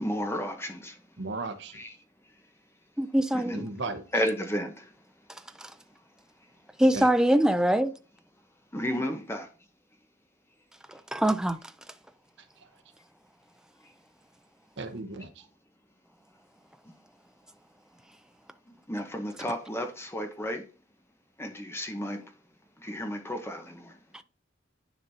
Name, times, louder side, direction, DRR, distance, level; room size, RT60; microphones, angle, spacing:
voice 1, 0.0-1.0 1.7-1.9 3.3-3.6 4.1-4.9 8.7-9.5 13.8-13.9 18.7-20.7 21.4-22.3 22.8-24.0, equal, 15° left, 0.9 m, -33 dB
voice 2, 1.2-1.8 3.5-4.0 6.9-7.1 12.4-12.8 14.8-15.4, right 3 dB, 60° right, 1.0 m, -36 dB
voice 3, 3.0-3.6 5.6-5.7 6.8-7.9 10.9-11.6 24.1-24.2, right 1 dB, 5° right, 0.3 m, -23 dB
10.0 x 5.2 x 2.7 m
head